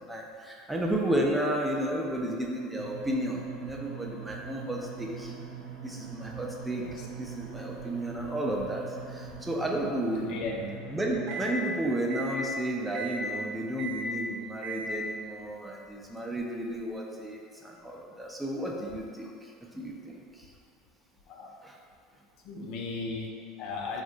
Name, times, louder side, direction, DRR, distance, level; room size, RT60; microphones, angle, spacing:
voice 1, 0.0-5.3 5.8-10.4 10.9-20.5 21.6-21.8, right 1 dB, 10° right, -1 dB, 0.4 m, -32 dB
sound 1, 2.8-11.6 12.1-12.4 12.9-13.3 13.8-14.1 14.6-15.0, right 3 dB, 55° right, 0.6 m, -40 dB
voice 2, 6.8-7.1 10.2-10.7 21.3-21.5 22.4-24.0, left 3 dB, 65° left, 0 dB, 0.4 m, -36 dB
2.6 x 2.1 x 3.7 m, 2.3 s
supercardioid pair, 95°, 0 cm